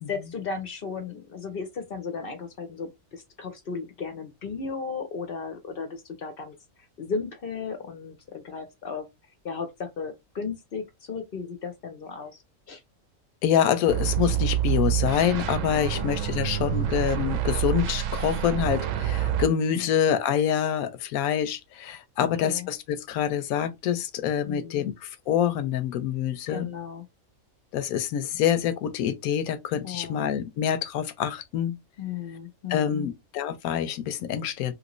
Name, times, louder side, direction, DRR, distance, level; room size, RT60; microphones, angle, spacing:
voice 1, 0.1-6.6 7.0-9.1 9.4-12.4 12.7-12.8 15.7-16.1 19.7-19.9 22.2-22.7 24.4-24.9 26.5-27.0 29.8-30.3 32.0-33.1, left 5 dB, 55° left, 0.7 m, -35 dB
voice 2, 13.4-26.7 27.7-31.8 32.7-34.7, left 9 dB, 85° left, 1.0 m, -26 dB
sound 1, 13.9-19.5, right 11 dB, 70° right, 0.9 m, -27 dB
3.1 x 2.6 x 3.0 m
omnidirectional pair, 1.5 m